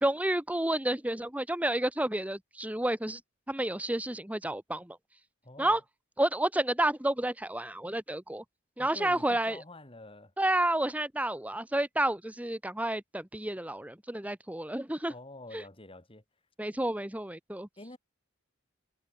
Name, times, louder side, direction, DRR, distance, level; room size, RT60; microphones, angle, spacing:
voice 1, 0.0-3.2 3.5-5.0 5.6-5.8 6.2-8.4 8.8-9.6 10.4-15.1 15.5-15.6 16.6-17.7, right 1 dB, 5° right, 1.1 m, -30 dB
voice 2, 5.4-5.8 8.8-10.3 15.1-16.2 17.8-18.0, left 2 dB, 25° left, 4.4 m, -48 dB
head